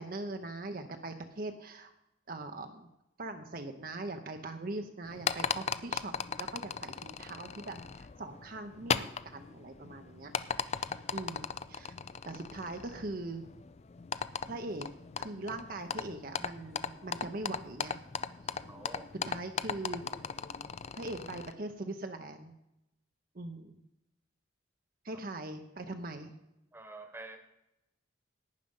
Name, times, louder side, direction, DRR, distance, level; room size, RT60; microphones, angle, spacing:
voice 1, 0.0-1.9 2.3-2.9 3.2-6.1 6.4-10.3 11.1-11.9 12.2-13.4 14.5-14.9 15.2-18.0 19.3-20.0 21.0-22.5 23.3-23.8 25.0-26.3, right 2 dB, 45° right, 6 dB, 0.8 m, -41 dB
sound 1, 5.0-21.5, left 6 dB, 35° left, 0.4 m, -38 dB
voice 2, 18.7-19.1 26.7-27.4, right 2 dB, 10° right, 6 dB, 1.2 m, -47 dB
11.5 x 9.2 x 5.4 m, 0.89 s
head